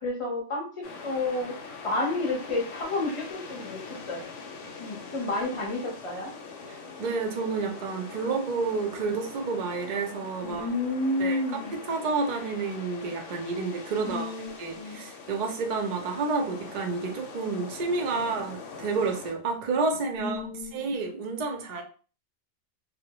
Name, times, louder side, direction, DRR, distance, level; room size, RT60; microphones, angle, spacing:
voice 1, 0.0-1.5 1.8-3.8 4.1-4.2 4.8-6.3 10.4-11.7 14.0-15.0 20.2-20.9, left 2 dB, 35° left, -1 dB, 0.6 m, -30 dB
sound 1, 0.8-19.3, left 4 dB, 85° left, 0.9 m, -43 dB
voice 2, 6.7-10.7 11.2-14.3 14.6-20.4 20.7-21.8, right 4 dB, 60° right, 3 dB, 0.4 m, -30 dB
2.1 x 2.0 x 2.8 m, 0.39 s
omnidirectional pair, 1.3 m